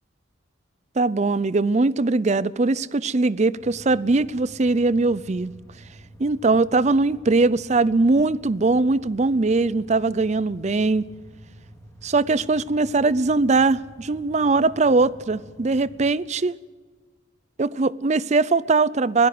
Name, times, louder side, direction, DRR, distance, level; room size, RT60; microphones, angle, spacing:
voice 1, 1.0-5.5 6.2-11.0 12.0-16.5 17.6-19.3, right 3 dB, 35° right, 0.5 m, -21 dB
sound 1, 3.6-16.1, right 1 dB, 15° left, 3.0 m, -48 dB
22.5 x 16.5 x 7.8 m
head